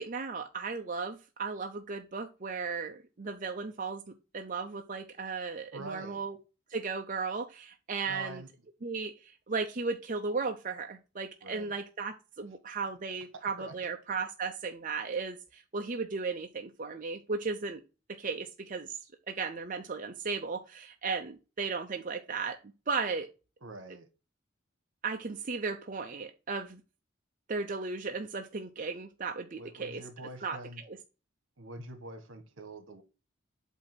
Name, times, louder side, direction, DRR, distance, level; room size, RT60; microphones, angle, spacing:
voice 1, 0.0-4.0 4.3-6.4 6.7-8.4 8.8-17.8 18.2-19.0 19.3-22.6 22.9-23.3 25.0-26.8 27.5-30.0 30.4-30.6, right 4 dB, 40° right, 0.6 m, -35 dB
voice 2, 5.7-6.3 8.1-8.5 11.4-11.7 13.3-13.7 23.6-24.1 29.6-30.8 31.6-33.0, right 2 dB, 70° right, 1.4 m, -45 dB
8.2 x 2.8 x 5.9 m
head